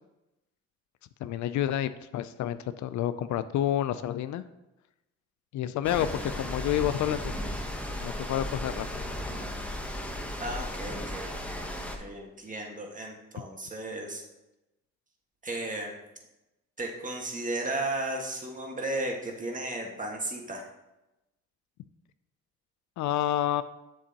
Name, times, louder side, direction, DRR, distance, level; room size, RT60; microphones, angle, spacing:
voice 1, 1.2-4.4 5.5-7.6 8.0-9.1 23.0-23.6, left 11 dB, 70° left, 13 dB, 0.4 m, -29 dB
sound 1, 5.8-12.0, left 1 dB, 5° left, 1.0 m, -35 dB
voice 2, 10.4-11.7 12.0-14.2 15.4-15.9 16.8-20.7, right 2 dB, 25° right, 0 dB, 1.6 m, -34 dB
7.3 x 7.1 x 2.9 m, 0.96 s
cardioid pair, 90°, 30 cm